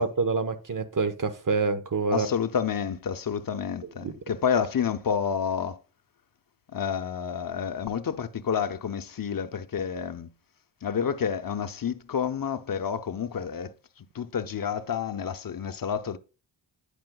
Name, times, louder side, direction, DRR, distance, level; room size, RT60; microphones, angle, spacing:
voice 1, 0.0-2.3 4.0-4.1, right 4 dB, 45° right, 0.9 m, -26 dB
voice 2, 2.1-5.8 6.7-10.3 10.8-16.2, left 7 dB, 45° left, 0.6 m, -29 dB
9.4 x 4.9 x 2.2 m
cardioid pair, 45°, 46 cm